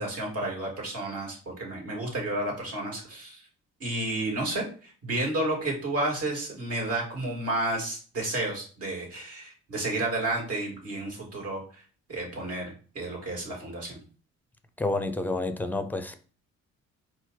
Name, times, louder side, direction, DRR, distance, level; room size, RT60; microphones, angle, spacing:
voice 1, 0.0-3.4 3.8-11.8 12.1-14.0, right 2 dB, 55° right, 2.2 m, -31 dB
voice 2, 14.8-16.1, left 2 dB, 5° left, 0.5 m, -29 dB
4.3 x 2.4 x 3.9 m
cardioid pair, 90°, 30 cm